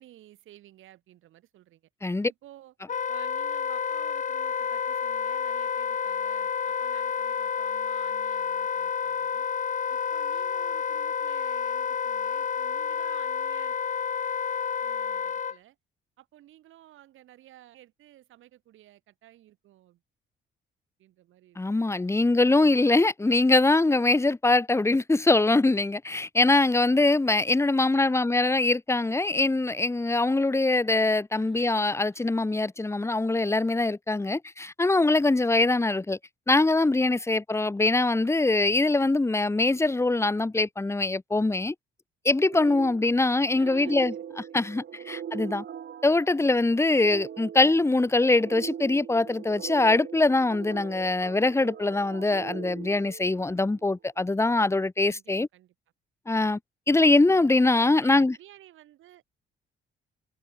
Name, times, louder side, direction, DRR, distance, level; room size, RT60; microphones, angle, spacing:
voice 1, 0.0-1.8 2.3-2.7 3.1-9.5 9.9-13.8 14.8-15.8 16.2-20.0 21.0-22.0 31.3-31.8 32.1-32.2 37.8-38.3 43.3-44.4 44.9-45.1 46.8-46.9 55.1-55.2 55.5-55.7 57.6-59.2, right 14 dB, 85° right, 7.1 m, -53 dB
Wind instrument woodwind instrument, 2.9-15.6, left 7 dB, 40° left, 1.1 m, -29 dB
voice 2, 21.6-36.2 36.5-41.7 42.2-45.6 46.0-55.5 56.3-56.6 56.9-58.3, left 2 dB, 15° left, 1.2 m, -23 dB
sound 1, 42.5-53.8, right 9 dB, 60° right, 6.9 m, -41 dB
cardioid pair, 90°, 20 cm